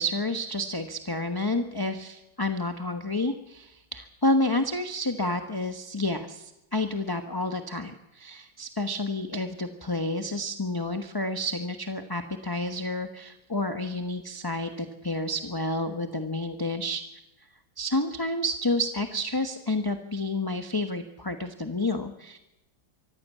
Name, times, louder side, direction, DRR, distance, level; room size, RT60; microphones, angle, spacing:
voice 1, 0.0-17.0 17.8-22.4, left 1 dB, 15° left, 6 dB, 0.8 m, -30 dB
24.0 x 15.0 x 8.3 m, 0.90 s
omnidirectional pair, 2.2 m